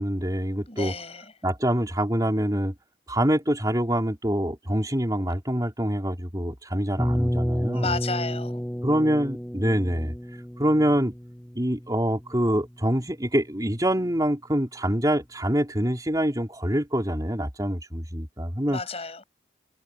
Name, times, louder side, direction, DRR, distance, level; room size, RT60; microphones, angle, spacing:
voice 1, 0.0-0.9 1.4-2.7 3.1-7.9 8.8-10.1 10.6-11.1 11.5-18.8, equal, 20° right, 4.2 m, -25 dB
voice 2, 0.7-1.3 7.7-8.6 18.5-19.2, left 4 dB, 35° left, 6.5 m, -33 dB
sound 1, 7.0-12.8, equal, 5° left, 1.2 m, -30 dB
head